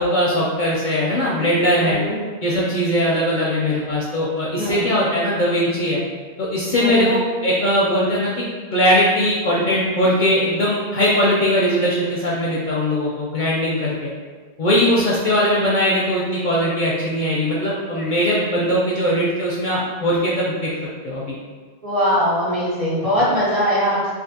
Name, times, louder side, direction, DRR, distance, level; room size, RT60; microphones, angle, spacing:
voice 1, 0.0-2.0 2.4-6.0 6.4-8.4 8.7-14.1 14.6-20.7 21.0-21.3, equal, 60° left, -5 dB, 0.6 m, -20 dB
voice 2, 1.8-2.1 4.6-4.8 6.8-7.1 18.0-18.1 21.8-24.1, equal, 35° right, -8 dB, 0.7 m, -21 dB
3.3 x 2.4 x 2.7 m, 1.5 s
omnidirectional pair, 1.1 m